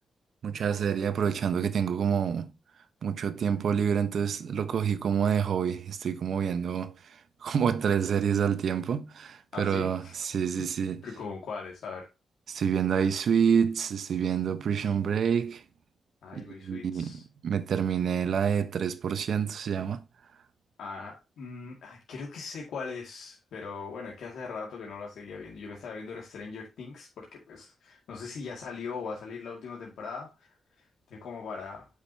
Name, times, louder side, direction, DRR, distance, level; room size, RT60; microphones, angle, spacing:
voice 1, 0.4-2.5 3.0-11.0 12.5-15.6 16.3-20.0, right 7 dB, 65° right, 1.1 m, -28 dB
voice 2, 9.5-10.2 10.6-10.7 11.0-12.1 16.2-17.2 20.8-31.9, left 5 dB, 90° left, 2.2 m, -40 dB
8.8 x 6.7 x 2.8 m
wide cardioid pair, 150°, 0 cm